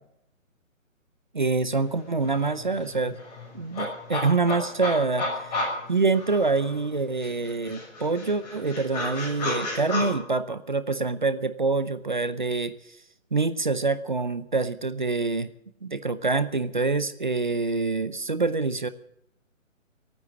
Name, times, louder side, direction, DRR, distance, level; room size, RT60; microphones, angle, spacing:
voice 1, 1.3-3.2 3.5-5.6 5.9-12.7 13.3-15.5 15.8-18.9, right 3 dB, 35° right, 14 dB, 0.6 m, -26 dB
sound 1, 1.9-2.0 2.2-6.9 7.2-10.1, left 2 dB, 30° left, 6.3 m, -33 dB
16.0 x 9.4 x 9.6 m, 0.76 s
hypercardioid pair, 170°, 40 cm